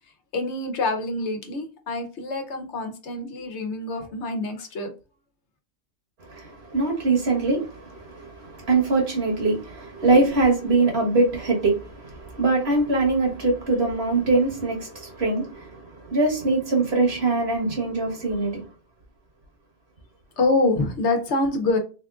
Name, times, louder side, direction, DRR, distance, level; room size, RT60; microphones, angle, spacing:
voice 1, 0.3-4.9 20.4-21.8, left 2 dB, 70° left, 1.1 m, -26 dB
voice 2, 6.3-18.6, right 3 dB, 60° right, 1.5 m, -23 dB
3.6 x 3.5 x 2.4 m
omnidirectional pair, 1.2 m